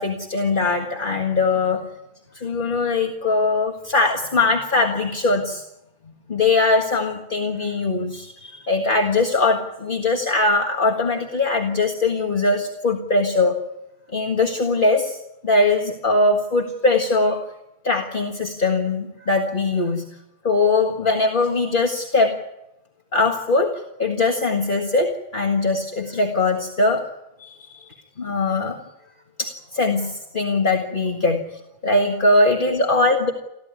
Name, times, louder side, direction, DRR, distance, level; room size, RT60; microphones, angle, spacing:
voice 1, 0.0-1.8 2.3-5.6 6.3-13.6 14.1-17.4 17.8-20.0 20.4-22.4 23.1-27.1 27.4-27.9 28.2-28.8 29.4-31.5 31.8-33.3, left 3 dB, 50° left, 2 dB, 1.9 m, -21 dB
24.5 x 15.5 x 9.6 m, 0.89 s
omnidirectional pair, 1.1 m